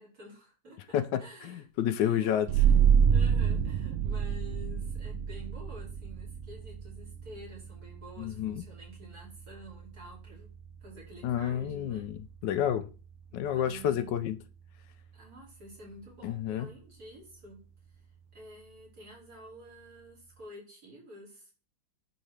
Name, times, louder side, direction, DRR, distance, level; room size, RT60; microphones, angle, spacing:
voice 1, 0.0-1.6 2.0-10.5 10.8-12.1 13.3-14.3 15.1-17.6 18.3-21.5, equal, 55° right, 3.1 m, -50 dB
voice 2, 0.9-2.5 8.2-8.6 11.2-12.9 13.3-14.4 16.2-16.7, left 10 dB, 75° left, 1.2 m, -30 dB
sound 1, 2.5-13.7, right 7 dB, 75° right, 0.7 m, -29 dB
11.0 x 3.7 x 3.3 m
omnidirectional pair, 2.0 m